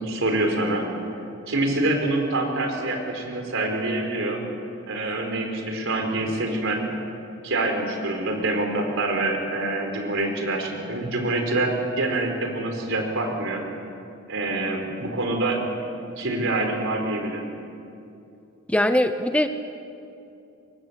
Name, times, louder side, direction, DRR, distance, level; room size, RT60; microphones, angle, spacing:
voice 1, 0.0-0.8 1.5-4.4 4.9-6.8 7.4-13.6 14.3-15.6 16.2-17.4, right 2 dB, 65° right, 3 dB, 4.8 m, -26 dB
voice 2, 18.7-19.5, left 1 dB, 5° left, 8 dB, 0.8 m, -21 dB
28.0 x 23.5 x 8.3 m, 2.6 s
head